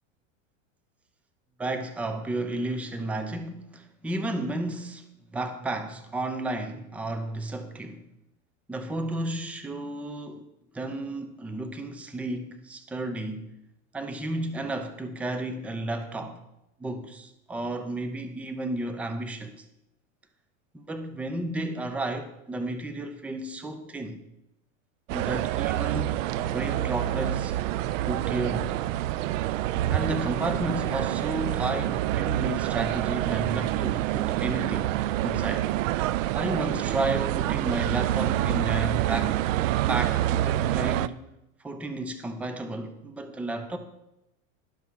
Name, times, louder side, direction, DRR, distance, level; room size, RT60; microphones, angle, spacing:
voice 1, 1.6-8.1 8.7-10.5 10.7-13.5 13.9-16.4 16.8-19.6 20.7-24.2 25.1-27.6 28.0-28.8 29.9-34.9 35.2-35.7 36.3-39.4 39.9-41.2 41.6-43.8, right 2 dB, 5° right, 0.6 m, -32 dB
sound 1, 25.1-41.1, right 14 dB, 80° right, 0.5 m, -27 dB
11.5 x 5.8 x 6.2 m
supercardioid pair, 135°, 38 cm